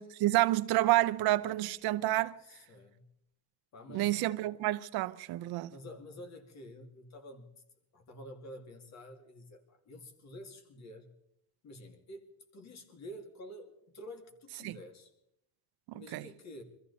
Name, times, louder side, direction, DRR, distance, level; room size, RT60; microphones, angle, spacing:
voice 1, 0.0-2.4 3.9-5.7 14.6-14.8 15.9-16.3, right 16 dB, 70° right, 0.8 m, -29 dB
voice 2, 2.4-3.1 3.7-4.3 5.7-7.5 7.9-11.1 11.6-12.2 12.5-15.1 15.9-16.6, left 1 dB, 45° left, 2.5 m, -49 dB
24.0 x 14.0 x 4.2 m
cardioid pair, 165°, 38 cm